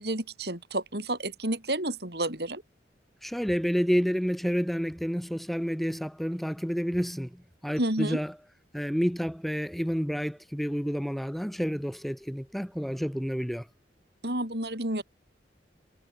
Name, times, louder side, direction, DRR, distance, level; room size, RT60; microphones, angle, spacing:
voice 1, 0.0-2.6 7.8-8.2 14.2-15.0, right 1 dB, 65° right, 6.7 m, -30 dB
voice 2, 3.2-8.4 8.7-13.7, equal, ahead, 4.0 m, -29 dB
head